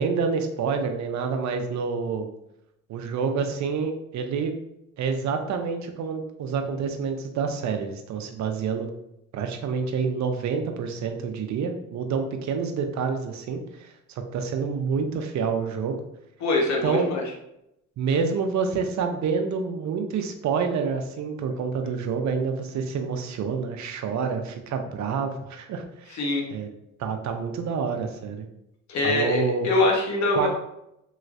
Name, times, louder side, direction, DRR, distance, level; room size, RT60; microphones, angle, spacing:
voice 1, 0.0-2.3 2.9-4.5 5.0-8.9 9.3-13.9 14.3-16.0 16.8-17.1 18.0-26.2 26.5-26.7 27.0-28.5 29.0-29.7 30.4-30.5, right 5 dB, 65° right, 6 dB, 0.6 m, -28 dB
voice 2, 16.4-17.2 26.1-26.4 28.9-30.5, left 2 dB, 65° left, -1 dB, 1.0 m, -23 dB
3.1 x 3.0 x 2.5 m, 0.82 s
cardioid pair, 90°, 30 cm